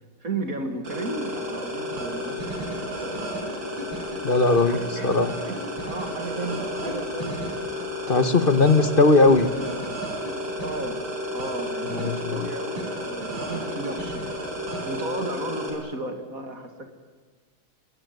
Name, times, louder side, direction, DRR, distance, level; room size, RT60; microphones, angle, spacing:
voice 1, 0.2-3.2 4.4-5.1 5.4-5.6 5.9-7.7 10.6-11.1 11.3-14.2 14.8-16.9, right 2 dB, 40° right, 7 dB, 2.5 m, -34 dB
sound 1, 0.8-15.7, equal, 60° right, 6.6 m, -32 dB
voice 2, 4.2-4.8 5.0-5.3 8.1-9.5 11.8-12.5, left 3 dB, 30° left, 11 dB, 1.3 m, -19 dB
25.5 x 20.5 x 9.5 m, 1.5 s
omnidirectional pair, 2.3 m